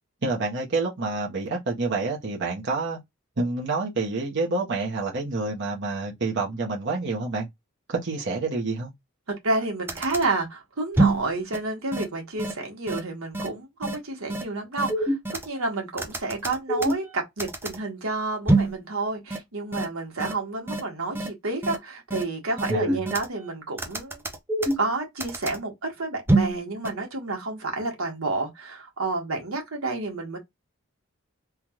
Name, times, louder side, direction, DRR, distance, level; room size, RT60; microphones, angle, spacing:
voice 1, 0.2-3.0 3.4-7.5 7.9-8.9 22.7-23.0, right 3 dB, 60° right, 1.2 m, -28 dB
voice 2, 9.4-15.2 15.4-24.2 24.8-30.4, right 3 dB, 80° right, 1.5 m, -30 dB
sound 1, 9.5-9.6 9.9-10.2 11.0-11.2 11.5-11.6 11.9-12.0 12.4-12.5 12.9-13.0 13.3-13.5 13.8-14.0 14.3-14.4 14.8-15.5 16.0-17.1 17.4-17.8 18.5-18.8 19.3-19.4 19.7-19.8 20.2-20.3 20.7-20.8 21.2-21.3 21.6-21.8 22.1-22.2 22.6-23.3 23.8-24.9 25.2-25.6 26.3-26.6 26.9-27.0, right 2 dB, 10° right, 0.7 m, -24 dB
3.6 x 2.4 x 3.0 m
head